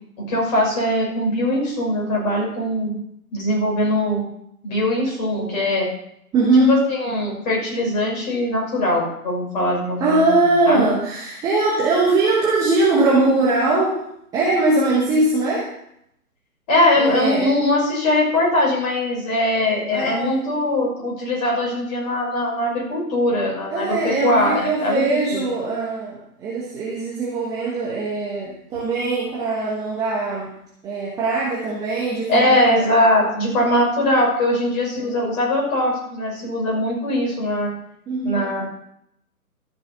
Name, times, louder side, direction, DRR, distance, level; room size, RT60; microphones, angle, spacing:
voice 1, 0.2-2.9 3.3-4.2 4.6-5.9 6.7-10.3 10.6-10.9 16.7-25.0 25.3-25.5 32.3-37.7 38.2-38.6, left 1 dB, 30° left, -3 dB, 5.9 m, -21 dB
voice 2, 6.3-6.9 10.0-14.0 14.3-15.7 17.0-17.5 19.9-20.6 23.7-30.5 30.8-33.3 35.0-35.2 38.1-38.5, right 2 dB, 10° right, -6 dB, 1.2 m, -21 dB
14.0 x 6.1 x 7.2 m, 0.75 s
figure-of-eight pair, 140°, 45 cm